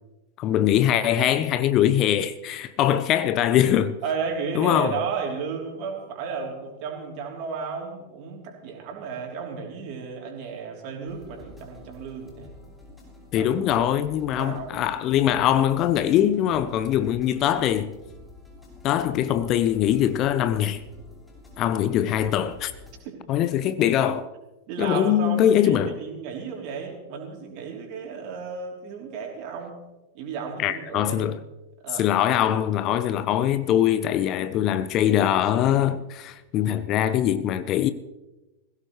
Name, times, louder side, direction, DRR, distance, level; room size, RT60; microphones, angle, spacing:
voice 1, 0.4-4.0 4.5-5.0 13.3-17.9 18.8-20.8 21.6-22.7 23.3-24.3 24.8-26.0 30.6-31.4 31.9-37.9, left 11 dB, 35° left, 0.6 m, -22 dB
voice 2, 4.0-12.5 13.3-13.5 13.9-14.9 23.0-23.2 24.7-29.8 30.1-31.3 31.8-32.2, right 5 dB, 45° right, 3.5 m, -33 dB
sound 1, 11.1-23.0, left 2 dB, 10° left, 6.8 m, -48 dB
21.0 x 16.5 x 3.3 m
figure-of-eight pair, 90°, 0 cm